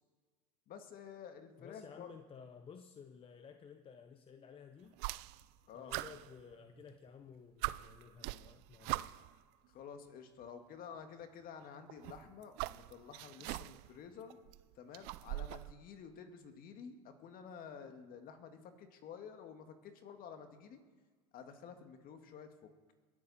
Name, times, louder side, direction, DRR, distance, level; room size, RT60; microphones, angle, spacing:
voice 1, 0.7-2.1 5.7-6.0 9.7-14.4 14.8-20.8 21.3-22.7, left 7 dB, 45° left, 7 dB, 2.0 m, -51 dB
voice 2, 1.6-5.0 5.7-9.1, left 6 dB, 25° left, 7 dB, 0.9 m, -54 dB
sound 1, 4.9-5.6 5.9-7.0 7.3-7.4 7.6-9.4 10.4-10.5 11.9-14.0 14.3-15.7, right 19 dB, 55° right, 0.5 m, -42 dB
22.0 x 13.0 x 4.2 m, 1.5 s
hypercardioid pair, 100°, 21 cm